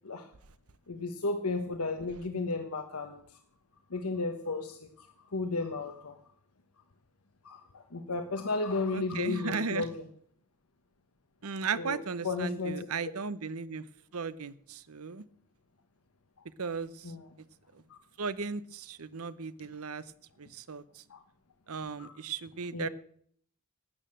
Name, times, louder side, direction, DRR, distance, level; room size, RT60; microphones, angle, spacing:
voice 1, 0.9-3.2 3.9-5.1 5.3-6.2 7.4-9.9 11.8-12.9 17.0-17.2 17.9-18.0 21.1-21.2 22.0-22.1 22.7-22.9, left 3 dB, 80° left, 6 dB, 1.1 m, -34 dB
voice 2, 8.9-9.9 11.4-13.9 14.1-15.2 16.6-17.1 17.7-17.8 18.2-20.1 20.4-21.0 21.7-22.9, right 5 dB, 75° right, 16 dB, 0.8 m, -36 dB
13.5 x 8.8 x 7.6 m, 0.62 s
head